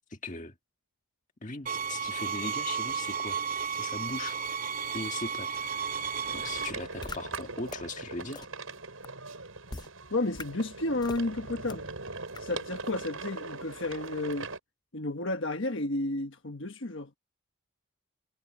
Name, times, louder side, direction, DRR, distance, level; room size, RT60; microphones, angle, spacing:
voice 1, 0.1-0.5 1.4-3.4 3.7-4.4 4.9-5.5 6.3-8.5, left 2 dB, 35° left, 1.8 m, -39 dB
sound 1, 1.7-6.7, right 6 dB, 40° right, 0.9 m, -33 dB
sound 2, 5.5-14.6, right 3 dB, 80° right, 6.7 m, -41 dB
sound 3, 7.0-7.2 7.7-7.8 8.3-8.4 9.0-9.1 9.7-9.9 10.3-10.4 11.0-11.2 11.7-11.8 12.3-12.4, left 3 dB, 20° left, 0.5 m, -39 dB
voice 2, 10.1-11.9 12.4-14.5 14.9-17.1, left 2 dB, 60° left, 1.4 m, -32 dB
head